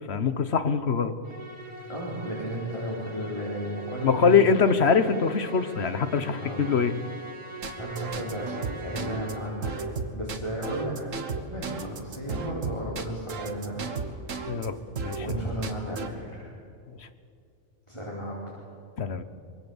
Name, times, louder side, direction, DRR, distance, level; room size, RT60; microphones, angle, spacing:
voice 1, 0.1-1.1 4.0-6.9 14.5-15.2 17.0-17.1 19.0-19.2, left 5 dB, 60° left, 11 dB, 1.4 m, -23 dB
Musical instrument, 1.2-9.8, right 2 dB, 25° right, 2.7 m, -43 dB
voice 2, 1.9-4.4 6.4-6.7 7.6-13.8 15.2-16.5 17.9-18.3, right 1 dB, 25° left, -5 dB, 4.4 m, -34 dB
sound 1, 7.6-14.7 15.0-16.1, right 4 dB, 90° right, 1.8 m, -34 dB
24.5 x 23.5 x 7.3 m, 2.4 s
omnidirectional pair, 1.3 m